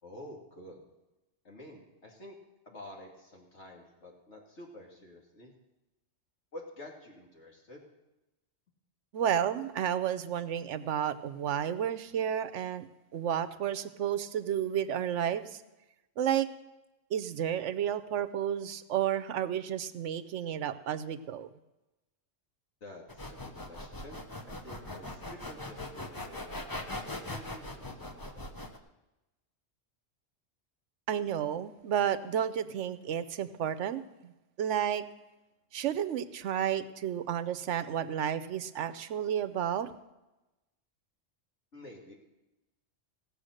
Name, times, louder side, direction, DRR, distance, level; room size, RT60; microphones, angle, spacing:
voice 1, 0.0-0.8 1.4-2.4 2.7-5.5 6.5-7.8 22.8-28.5 41.7-42.1, left 1 dB, 70° left, -1 dB, 2.7 m, -49 dB
voice 2, 9.1-12.9 13.1-15.5 16.2-16.5 17.1-21.5 31.1-34.3 34.6-35.0 35.7-39.9, right 9 dB, 80° right, 13 dB, 1.0 m, -31 dB
sound 1, 23.1-28.8, left 2 dB, 20° left, 0.7 m, -40 dB
17.0 x 6.9 x 6.4 m, 1.0 s
omnidirectional pair, 1.2 m